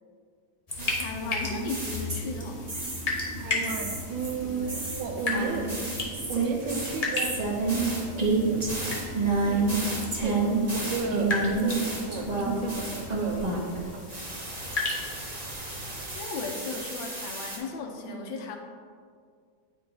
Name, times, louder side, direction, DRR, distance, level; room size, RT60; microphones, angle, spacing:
sound 1, 0.7-16.1, left 2 dB, 40° left, 0.5 m, -35 dB
sound 2, 0.8-2.4 2.7-3.3 3.7-13.8 14.1-17.6, right 3 dB, 30° right, 0.7 m, -30 dB
voice 1, 1.0-2.6 16.1-18.6, left 4 dB, 80° left, 2 dB, 1.5 m, -36 dB
sound 3, 2.0-13.8, right 3 dB, 10° right, 1.4 m, -44 dB
voice 2, 3.4-5.7 6.3-7.4 8.1-8.6 9.5-10.4 10.7-14.1 18.0-18.4, right 4 dB, 75° right, 4 dB, 1.3 m, -34 dB
9.1 x 3.9 x 3.9 m, 2.1 s
omnidirectional pair, 2.1 m